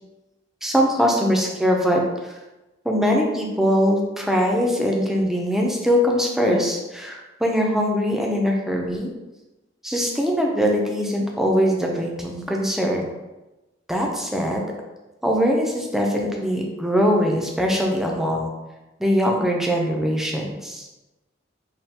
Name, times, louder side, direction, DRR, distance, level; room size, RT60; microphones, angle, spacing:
voice 1, 0.6-2.3 2.8-9.1 9.8-13.1 13.9-14.7 15.2-18.5 19.0-20.9, equal, ahead, 0 dB, 0.3 m, -22 dB
3.3 x 2.3 x 2.7 m, 1.1 s
head